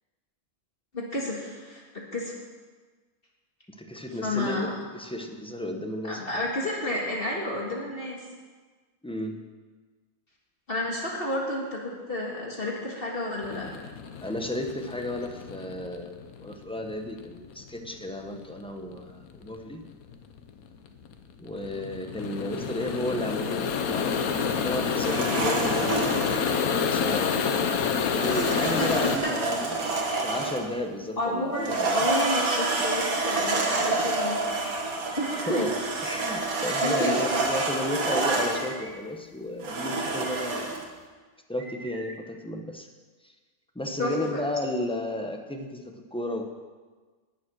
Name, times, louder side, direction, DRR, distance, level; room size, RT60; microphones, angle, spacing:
voice 1, 0.9-2.3 4.2-4.8 6.0-8.2 10.7-13.7 28.8-29.3 30.1-30.2 31.2-34.7 35.2-35.7 36.8-37.2 44.0-44.4, left 1 dB, 40° left, -2 dB, 2.0 m, -31 dB
voice 2, 3.8-6.2 9.0-9.4 14.2-19.9 21.4-29.7 30.2-32.1 35.5-35.7 36.0-40.8 41.5-42.9 43.2-43.3 43.7-46.4, left 1 dB, 5° left, 4 dB, 1.0 m, -33 dB
sound 1, 13.4-29.2, left 6 dB, 85° left, 1.3 m, -29 dB
sound 2, 25.0-26.4 28.1-30.7 31.5-38.7 39.6-40.8, right 3 dB, 85° right, 2.0 m, -28 dB
sound 3, 31.5-32.3 33.4-34.1 35.1-35.6 36.6-37.4 38.4-38.9 40.0-40.5 41.6-42.2, right 3 dB, 65° right, 1.8 m, -45 dB
18.5 x 7.3 x 6.3 m, 1.4 s
omnidirectional pair, 1.5 m